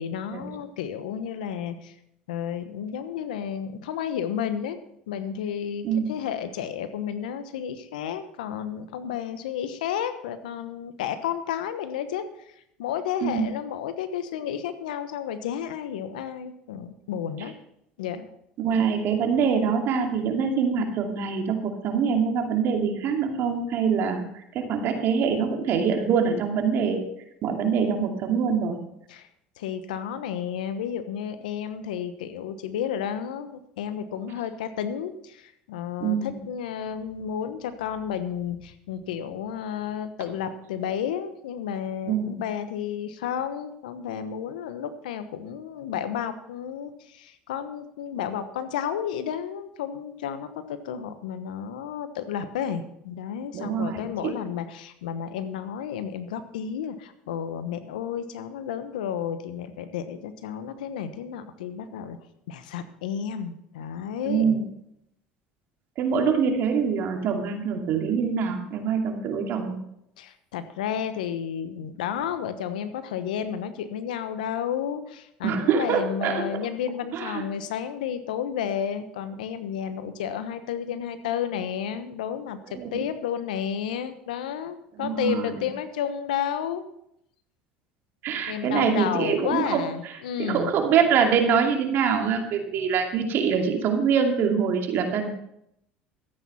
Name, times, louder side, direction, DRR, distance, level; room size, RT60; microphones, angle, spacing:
voice 1, 0.0-1.9 2.3-4.8 5.1-12.3 12.8-17.5 18.0-18.3 29.1-29.3 29.6-62.2 62.5-64.5 70.2-86.8 88.5-90.7, left 8 dB, 85° left, 11 dB, 1.1 m, -32 dB
voice 2, 18.6-24.2 24.5-27.0 27.4-28.8 36.0-36.4 42.1-42.3 53.5-54.3 64.2-64.6 66.0-69.7 75.4-76.4 77.1-77.4 82.7-82.9 85.0-85.6 88.2-89.8 90.4-95.3, right 6 dB, 55° right, 4 dB, 2.5 m, -24 dB
13.5 x 8.9 x 5.7 m, 0.77 s
supercardioid pair, 85°, 4 cm